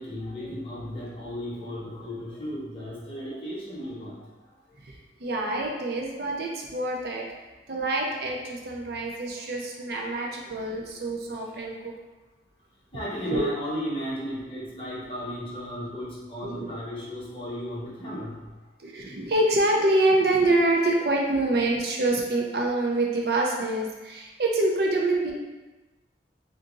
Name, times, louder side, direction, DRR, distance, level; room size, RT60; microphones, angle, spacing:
voice 1, 0.0-4.3 10.9-11.0 12.9-18.5, equal, 30° left, -6 dB, 0.9 m, -35 dB
voice 2, 4.8-7.3 7.7-11.8 13.2-13.4 16.4-16.7 18.8-25.3, right 2 dB, 60° right, -1 dB, 0.5 m, -26 dB
2.7 x 2.6 x 3.7 m, 1.1 s
head